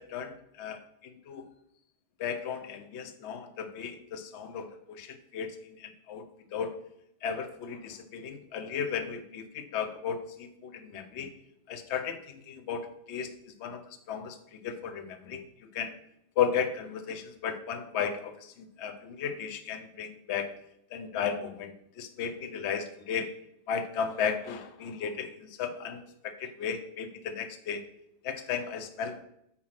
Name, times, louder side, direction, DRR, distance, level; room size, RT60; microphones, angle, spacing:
voice 1, 0.0-1.4 2.2-6.2 6.5-6.7 7.2-11.3 11.7-13.3 13.6-15.9 16.4-20.6 20.9-23.3 23.7-25.3 25.6-27.8 28.2-29.3, left 7 dB, 55° left, 8 dB, 0.7 m, -35 dB
8.5 x 4.6 x 5.7 m, 0.75 s
omnidirectional pair, 2.2 m